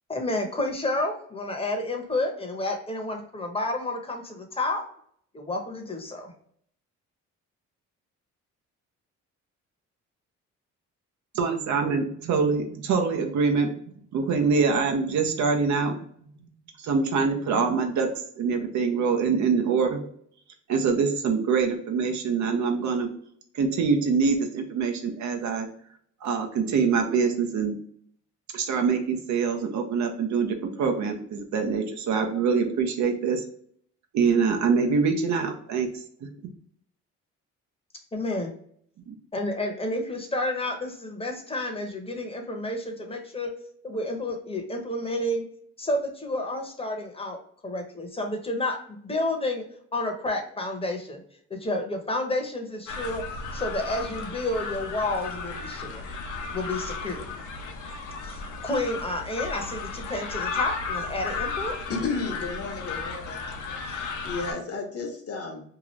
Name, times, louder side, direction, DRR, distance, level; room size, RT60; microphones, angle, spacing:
voice 1, 0.1-4.8 5.3-6.3 38.1-38.5 39.3-43.5 43.8-45.4 45.8-49.6 49.9-51.2 51.5-53.2 53.5-56.0 56.5-57.3 58.2-61.8, left 1 dB, 20° left, 3 dB, 0.8 m, -30 dB
voice 2, 11.3-13.8 14.1-16.0 16.8-18.1 18.4-20.0 20.7-23.1 23.5-25.7 26.2-27.7 28.5-33.4 34.1-35.9 39.1-39.2, right 5 dB, 65° right, 4 dB, 0.7 m, -24 dB
sound 1, 52.9-64.5, left 4 dB, 85° left, 0.7 m, -34 dB
voice 3, 61.9-63.4 63.8-65.6, left 4 dB, 50° left, 3 dB, 0.9 m, -33 dB
2.8 x 2.4 x 3.1 m, 0.64 s
cardioid pair, 90°, 30 cm